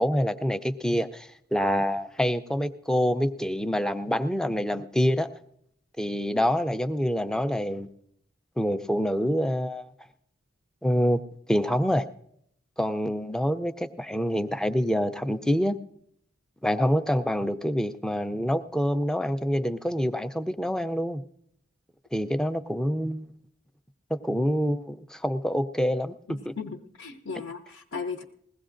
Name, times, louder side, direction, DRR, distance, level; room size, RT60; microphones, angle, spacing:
voice 1, 0.0-5.3 6.0-7.9 8.6-9.9 10.8-11.2 11.5-12.1 12.8-15.8 16.6-21.2 22.1-23.3 24.1-26.1, equal, 5° left, 9 dB, 0.4 m, -26 dB
voice 2, 26.3-28.2, left 5 dB, 85° left, 1 dB, 0.8 m, -36 dB
21.0 x 16.5 x 2.5 m, 0.73 s
head